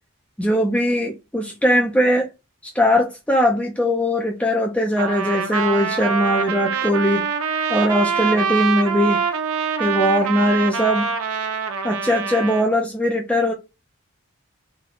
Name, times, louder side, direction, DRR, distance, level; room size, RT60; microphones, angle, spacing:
voice 1, 0.4-2.3 2.7-7.2 7.7-9.2 9.8-11.1 11.8-13.5, equal, 5° left, 0.4 m, -20 dB
Trumpet, 5.0-12.7, right 6 dB, 85° right, 0.5 m, -24 dB
3.4 x 2.2 x 3.7 m
head